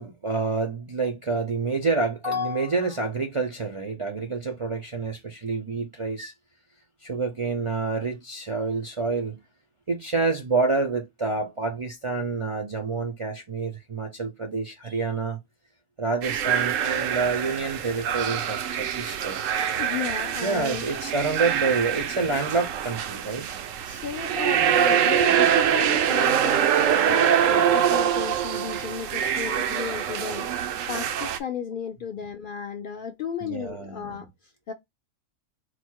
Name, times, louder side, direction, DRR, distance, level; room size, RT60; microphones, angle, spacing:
voice 1, 0.0-6.3 7.0-9.4 9.9-15.4 16.0-19.4 20.4-23.6 33.4-34.3, right 3 dB, 40° right, 0.4 m, -28 dB
sound 1, 16.2-31.4, right 9 dB, 85° right, 1.0 m, -24 dB
voice 2, 19.8-20.9 23.8-30.5 30.9-34.7, left 7 dB, 60° left, 0.5 m, -34 dB
4.4 x 2.1 x 4.5 m
omnidirectional pair, 1.3 m